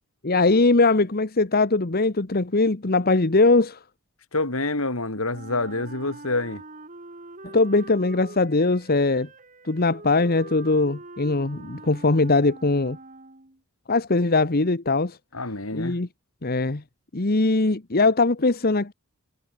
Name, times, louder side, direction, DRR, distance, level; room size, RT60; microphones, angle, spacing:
voice 1, 0.2-3.8 7.4-9.3 9.6-13.0 13.9-15.2 15.7-16.1 16.4-16.8 17.1-18.9, left 3 dB, 45° left, 1.2 m, -21 dB
voice 2, 4.3-6.6 15.3-16.0, left 2 dB, 70° left, 4.0 m, -27 dB
Wind instrument woodwind instrument, 5.3-13.6, right 2 dB, 35° right, 3.0 m, -44 dB
head